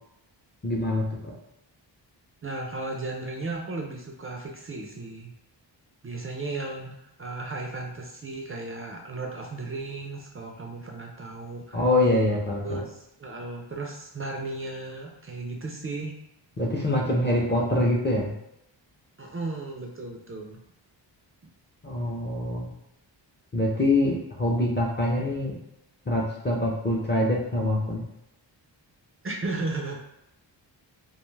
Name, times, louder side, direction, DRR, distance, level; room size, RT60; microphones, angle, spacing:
voice 1, 0.6-1.3 11.7-12.8 16.6-18.3 21.8-22.7 23.5-25.6 26.1-28.0, left 1 dB, 25° left, -3 dB, 0.5 m, -25 dB
voice 2, 2.4-5.3 6.0-11.8 12.6-16.1 19.2-20.6 29.2-30.0, right 3 dB, 30° right, 1 dB, 0.4 m, -35 dB
2.4 x 2.3 x 3.1 m, 0.84 s
wide cardioid pair, 95°, 46 cm